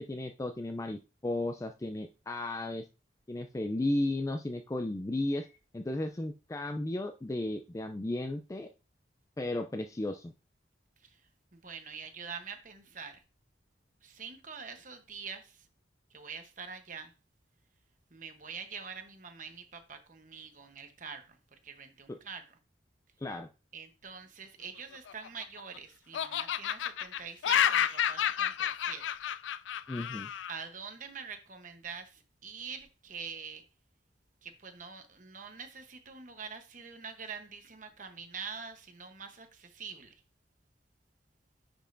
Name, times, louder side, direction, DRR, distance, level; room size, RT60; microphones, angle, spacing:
voice 1, 0.0-2.8 3.3-5.5 5.7-8.7 9.4-10.3 22.1-22.2 23.2-23.5 29.9-30.3, left 1 dB, 15° left, 0.4 m, -34 dB
voice 2, 11.5-13.2 14.0-15.7 16.1-17.1 18.1-21.4 21.6-22.6 23.7-29.0 30.5-33.6 34.4-40.1, right 6 dB, 45° right, 1.0 m, -45 dB
Laughter, 24.9-25.8 26.1-30.5, left 9 dB, 85° left, 0.4 m, -30 dB
9.9 x 5.2 x 2.6 m
head